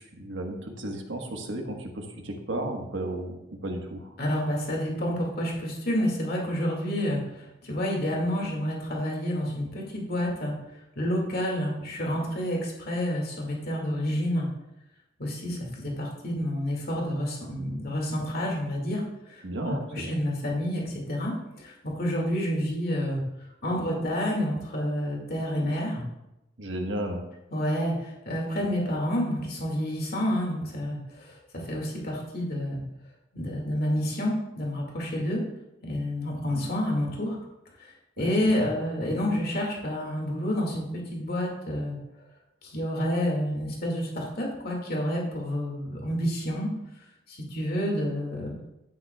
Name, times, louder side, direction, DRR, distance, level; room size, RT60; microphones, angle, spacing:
voice 1, 0.0-4.1 19.4-20.2 26.6-27.2 38.2-38.7, right 1 dB, 75° right, 2 dB, 1.4 m, -34 dB
voice 2, 4.2-10.5 11.0-14.5 15.2-23.2 23.6-26.1 27.5-32.8 33.3-35.4 35.8-37.4 37.8-37.9 38.2-42.0 42.6-46.7 47.3-48.6, equal, 55° left, -1 dB, 2.2 m, -29 dB
11.0 x 9.6 x 2.4 m, 0.90 s
head